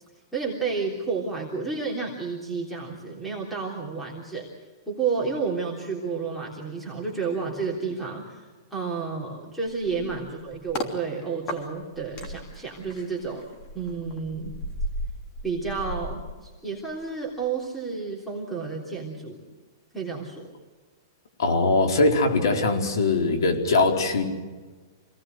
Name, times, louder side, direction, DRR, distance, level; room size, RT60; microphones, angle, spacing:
voice 1, 0.3-4.5 4.9-13.5 13.7-14.5 15.4-19.4 19.9-20.5, right 5 dB, ahead, -2 dB, 3.4 m, -31 dB
sound 1, 9.7-11.0 11.5-17.1 17.4-17.6, left 1 dB, 30° left, 3.2 m, -36 dB
voice 2, 21.4-24.2, left 3 dB, 75° left, 4 dB, 4.5 m, -21 dB
26.5 x 18.5 x 7.9 m, 1.4 s
hypercardioid pair, 160°, 2 cm